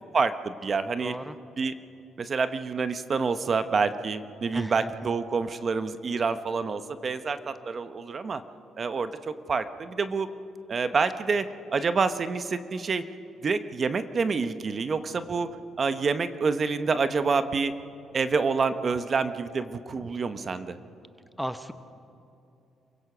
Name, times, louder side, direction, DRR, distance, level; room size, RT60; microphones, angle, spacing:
voice 1, 0.0-1.1 1.6-1.7 2.2-8.4 8.8-10.3 10.7-13.0 13.4-15.5 15.8-17.7 18.1-20.8, right 4 dB, 40° right, 11 dB, 1.0 m, -27 dB
voice 2, 1.0-1.4 4.5-4.9 21.4-21.7, equal, 5° right, 10 dB, 0.9 m, -34 dB
27.5 x 16.5 x 6.2 m, 2.7 s
cardioid pair, 90°, 0 cm